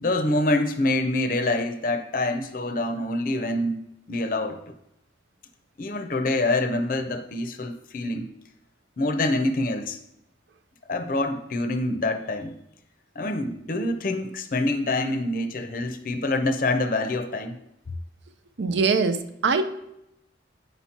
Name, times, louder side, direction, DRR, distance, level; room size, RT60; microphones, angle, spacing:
voice 1, 0.0-3.8 4.1-4.8 5.8-8.3 9.0-10.0 10.9-12.5 13.2-17.6, left 2 dB, 50° left, 8 dB, 0.5 m, -26 dB
voice 2, 18.6-19.8, right 4 dB, 80° right, 10 dB, 0.6 m, -23 dB
8.0 x 5.8 x 2.8 m, 0.82 s
head